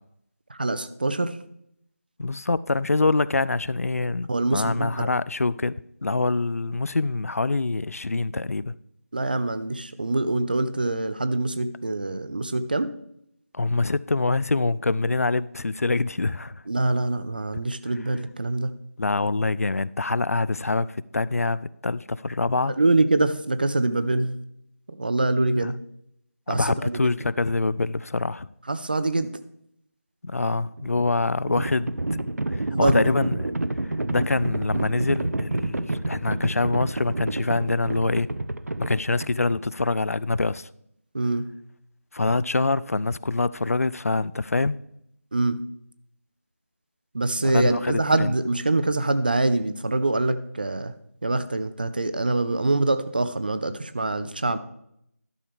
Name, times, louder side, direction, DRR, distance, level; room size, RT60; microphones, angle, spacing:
voice 1, 0.5-1.4 4.3-5.1 9.1-12.9 16.7-18.7 22.8-24.4 24.9-25.8 26.5-27.1 28.7-29.3 32.7-33.1 41.1-41.5 45.3-45.6 47.1-50.9 51.2-54.6, right 2 dB, 35° right, 0.5 m, -24 dB
voice 2, 2.2-8.8 13.5-16.6 19.0-22.8 25.6-25.7 26.5-28.5 30.2-32.2 32.5-33.5 33.8-38.3 38.8-40.7 42.1-44.8 47.4-48.3, left 3 dB, 65° left, 0.3 m, -25 dB
Livestock farm animals working animals, 30.7-39.7, right 2 dB, 75° right, 0.7 m, -29 dB
12.0 x 6.6 x 3.5 m
figure-of-eight pair, 170°, 8 cm